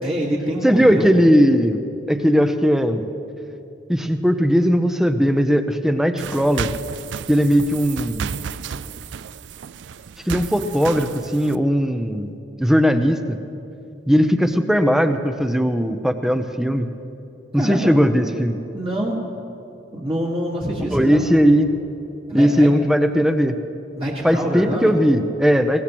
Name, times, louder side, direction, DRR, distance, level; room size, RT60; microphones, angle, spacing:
voice 1, 0.0-1.2 17.6-18.1 18.7-19.1 19.9-21.2 22.3-22.7 24.0-24.9, right 1 dB, 30° right, -5 dB, 1.7 m, -25 dB
voice 2, 0.6-1.8 2.1-3.1 3.9-6.7 7.3-8.4 10.3-12.3 12.6-13.4 14.1-16.9 17.5-18.6 20.9-21.8 22.3-23.6 24.2-25.8, equal, ahead, 8 dB, 0.6 m, -18 dB
sound 1, 6.2-11.6, right 7 dB, 70° right, 0.4 m, -33 dB
22.0 x 18.0 x 3.0 m, 2.7 s
head